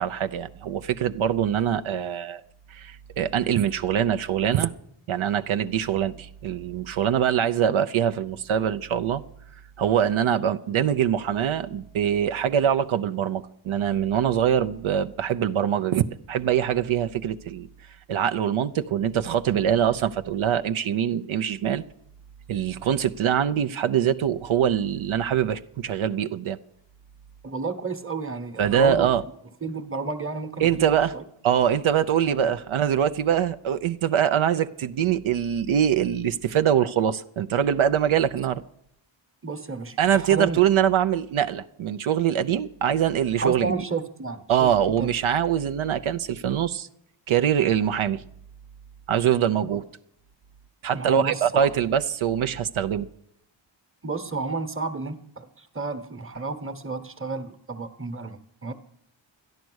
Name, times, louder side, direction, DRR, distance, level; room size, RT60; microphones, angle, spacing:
voice 1, 0.0-2.4 2.7-4.7 5.1-9.2 9.8-17.7 18.1-21.8 22.5-26.6 28.6-29.2 30.6-31.1 31.4-38.6 40.0-43.7 44.5-46.9 47.3-48.2 49.1-49.8 50.8-53.1, right 9 dB, 85° right, 0.7 m, -23 dB
voice 2, 27.4-29.1 29.6-31.2 32.3-32.5 39.4-40.6 43.4-44.7 45.0-45.1 50.9-51.7 54.0-58.7, right 4 dB, 25° right, 1.1 m, -31 dB
13.0 x 10.5 x 6.3 m
wide cardioid pair, 135°, 47 cm